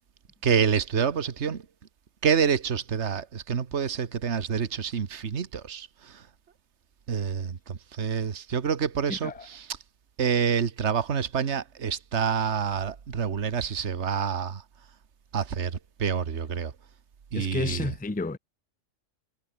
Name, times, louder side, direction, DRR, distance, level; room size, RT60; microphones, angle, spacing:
voice 1, 0.4-1.6 2.2-6.2 7.1-9.7 10.2-14.6 15.3-16.7 17.3-17.9, right 7 dB, 65° right, 1.6 m, -27 dB
voice 2, 9.1-9.5 17.3-18.4, left 3 dB, 10° left, 0.6 m, -31 dB
omnidirectional pair, 1.3 m